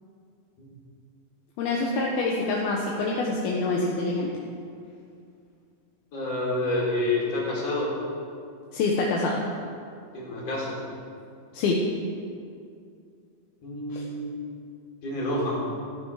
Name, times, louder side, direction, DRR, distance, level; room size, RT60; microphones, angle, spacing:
voice 1, 1.6-4.3 8.7-9.4 11.5-11.8 13.9-14.0, left 3 dB, 75° left, -2 dB, 3.0 m, -26 dB
voice 2, 6.1-7.9 10.1-10.8 13.6-14.3 15.0-15.7, left 2 dB, 40° left, -5 dB, 5.0 m, -28 dB
16.5 x 14.5 x 4.9 m, 2.3 s
omnidirectional pair, 4.5 m